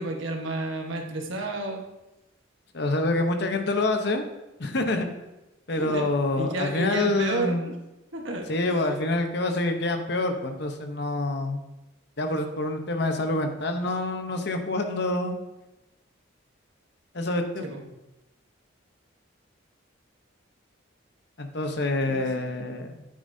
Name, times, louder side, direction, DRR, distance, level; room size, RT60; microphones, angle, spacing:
voice 1, 0.0-1.8 5.8-6.1 6.4-7.7 8.1-8.9 17.6-17.8 22.1-22.5, right 2 dB, 75° right, 2 dB, 1.3 m, -31 dB
voice 2, 2.7-4.2 4.6-5.1 5.7-7.7 8.5-11.6 12.2-15.4 17.1-17.7 21.4-23.1, left 2 dB, 55° left, 5 dB, 0.9 m, -26 dB
8.9 x 8.7 x 2.7 m, 0.98 s
head